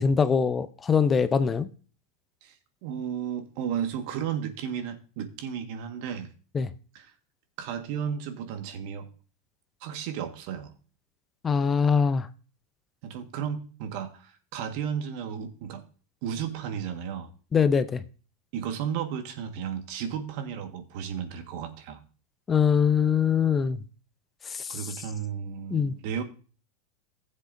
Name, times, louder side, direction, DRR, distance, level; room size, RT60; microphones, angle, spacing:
voice 1, 0.0-1.7 6.5-6.7 11.4-12.3 17.5-18.0 22.5-23.8 24.5-24.8 25.7-25.9, left 6 dB, 25° left, 0.6 m, -23 dB
voice 2, 2.8-6.3 6.9-7.1 7.6-9.1 9.8-10.7 13.0-15.8 16.2-17.3 18.5-22.0 24.7-26.2, right 8 dB, 60° right, 1.6 m, -33 dB
15.0 x 7.4 x 2.7 m
hypercardioid pair, 100°, 0 cm